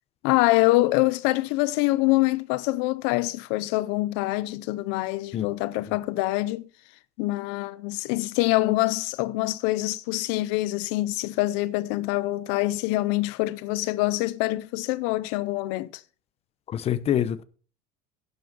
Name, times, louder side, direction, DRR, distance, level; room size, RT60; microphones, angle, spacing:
voice 1, 0.2-6.7 7.2-16.0, left 19 dB, 80° left, 0.6 m, -25 dB
voice 2, 16.7-17.4, left 10 dB, 35° left, 0.9 m, -26 dB
11.0 x 8.0 x 5.4 m
cardioid pair, 140°, 18 cm